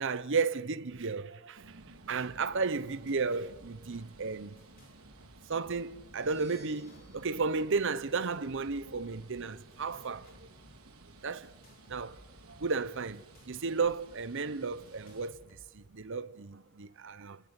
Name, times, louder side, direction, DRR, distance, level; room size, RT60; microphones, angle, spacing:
voice 1, 0.0-1.8 2.1-4.5 5.5-10.5 11.2-11.5 11.9-12.2 12.5-15.4 15.7-17.4, right 4 dB, 60° right, 0.8 m, -33 dB
sound 1, 1.6-15.3, right 2 dB, 90° right, 4.5 m, -55 dB
sound 2, 2.8-3.2 3.5-4.0 4.6-6.0 6.3-7.2 8.0-9.2 9.7-10.8 11.4-13.9 14.2-14.3 14.8-15.9, equal, 45° left, 5.0 m, -60 dB
sound 3, 5.9-8.8, left 2 dB, 15° left, 7.2 m, -62 dB
30.0 x 17.0 x 8.3 m
head